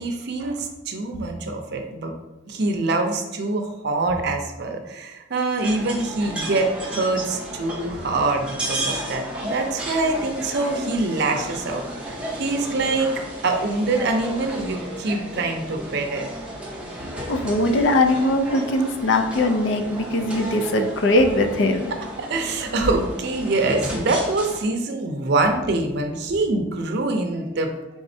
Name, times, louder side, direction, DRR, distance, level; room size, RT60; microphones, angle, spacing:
voice 1, 0.0-2.1 2.5-13.1 13.4-16.3 22.2-27.8, right 2 dB, 60° right, 4 dB, 0.5 m, -24 dB
sound 1, 5.6-24.6, right 1 dB, 5° right, 0.7 m, -33 dB
voice 2, 17.3-21.9, left 1 dB, 65° left, 6 dB, 0.4 m, -20 dB
4.1 x 3.5 x 2.7 m, 1.0 s
head